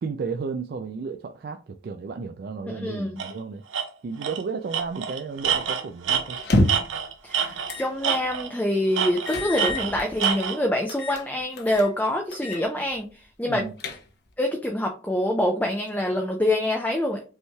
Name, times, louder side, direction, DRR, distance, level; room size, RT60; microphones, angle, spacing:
voice 1, 0.0-3.6 4.0-6.4 13.4-13.7, right 5 dB, 55° right, 0.3 m, -33 dB
voice 2, 2.7-3.1 7.2-13.7 14.4-17.2, left 1 dB, 10° left, 0.5 m, -26 dB
Tools, 3.2-3.3 3.7-3.8 4.2-4.4 4.7-7.8 8.0-8.6 8.9-10.6, right 7 dB, 90° right, 0.8 m, -26 dB
sound 1, 6.4-7.0 7.7-7.9 8.3-8.4 9.3-10.4 10.9-11.2 11.6-11.9 12.3-12.6 12.9-13.0 13.5-14.3, left 1 dB, 55° left, 0.8 m, -27 dB
5.4 x 3.1 x 2.2 m
head